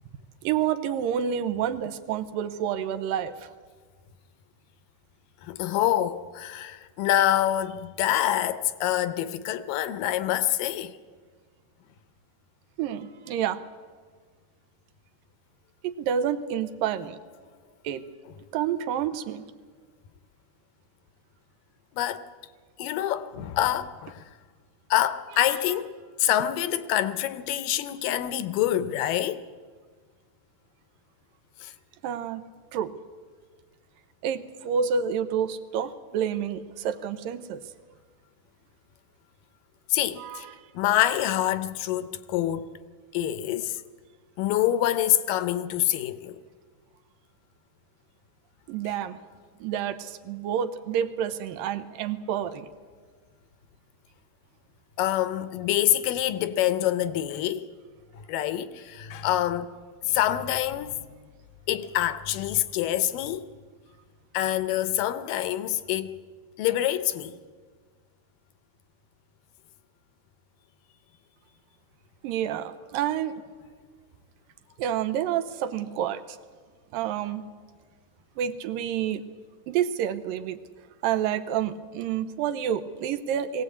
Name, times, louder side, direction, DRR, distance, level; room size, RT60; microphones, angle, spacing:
voice 1, 0.4-3.5 12.8-13.6 15.8-17.2 17.8-18.0 18.5-19.5 25.4-25.5 32.0-32.4 32.7-32.9 34.2-37.6 40.2-40.5 48.7-49.2 49.6-52.7 72.2-73.3 74.8-76.4 76.9-77.4 78.4-79.2 79.7-80.6 81.0-83.6, right 9 dB, 80° right, 2.5 m, -29 dB
voice 2, 5.4-11.0 21.9-22.2 22.8-24.3 24.9-29.5 31.6-31.7 39.9-40.5 40.7-42.7 43.1-43.8 44.4-46.4 55.0-57.6 58.1-59.7 60.0-61.0 61.7-63.5 64.3-66.2 66.6-67.4, left 12 dB, 80° left, 2.3 m, -26 dB
20.0 x 17.0 x 8.4 m
omnidirectional pair, 4.1 m